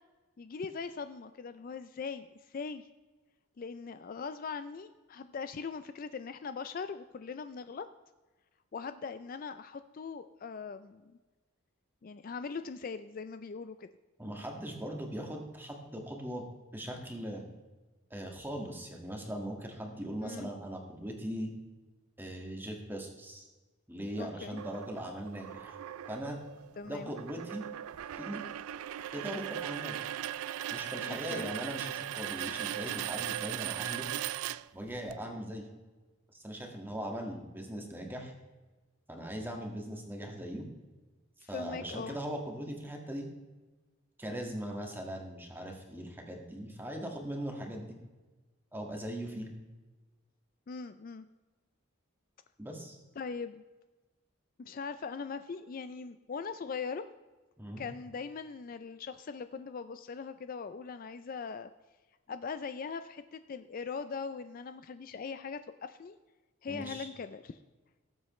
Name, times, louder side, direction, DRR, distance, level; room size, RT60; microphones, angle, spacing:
voice 1, 0.4-2.9 3.6-7.9 8.7-11.2 12.0-13.9 20.2-20.5 24.2-24.6 26.8-27.1 31.1-31.5 41.4-42.2 50.7-51.3 53.2-53.6 54.6-57.0 57.8-61.7 62.3-66.2 66.6-67.5, left 5 dB, 40° left, 11 dB, 0.3 m, -40 dB
voice 2, 14.2-16.5 16.7-17.4 18.1-21.5 22.2-23.5 23.9-25.8 26.1-26.4 26.8-27.6 28.1-28.4 29.1-30.0 30.7-34.1 34.7-35.7 36.3-38.3 39.1-40.7 41.5-43.3 44.2-47.9 48.7-49.5 52.6-53.0 57.6-57.9 66.7-67.1, equal, 10° right, 1 dB, 1.7 m, -40 dB
sound 1, 24.6-35.1, right 12 dB, 85° right, 0.3 m, -38 dB
18.5 x 8.0 x 3.1 m, 1.2 s
head